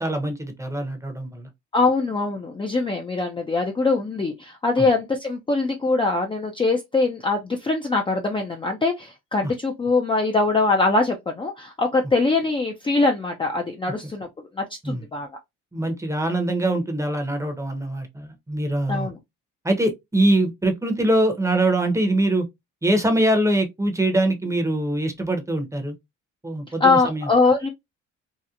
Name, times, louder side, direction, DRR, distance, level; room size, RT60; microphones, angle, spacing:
voice 1, 0.0-1.5 4.8-4.9 9.4-9.5 14.8-15.0 15.7-19.1 19.6-22.5 22.8-26.0 26.4-27.3, right 1 dB, 10° right, 0.7 m, -23 dB
voice 2, 1.7-14.3 14.6-15.3 18.9-19.2 26.8-27.7, left 3 dB, 15° left, 0.4 m, -22 dB
2.8 x 2.1 x 2.4 m
cardioid pair, 90°, 30 cm